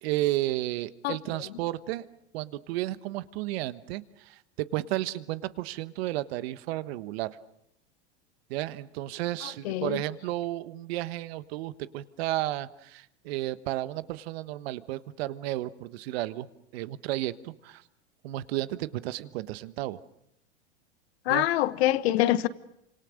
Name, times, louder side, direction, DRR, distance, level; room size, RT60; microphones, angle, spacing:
voice 1, 0.0-2.0 2.3-7.3 8.5-16.5 16.7-17.8 18.2-20.0 21.3-21.5, right 16 dB, 65° right, 1.3 m, -32 dB
voice 2, 9.6-10.0 21.3-22.5, left 14 dB, 70° left, 1.3 m, -24 dB
28.0 x 26.0 x 6.5 m
hypercardioid pair, 110°, 33 cm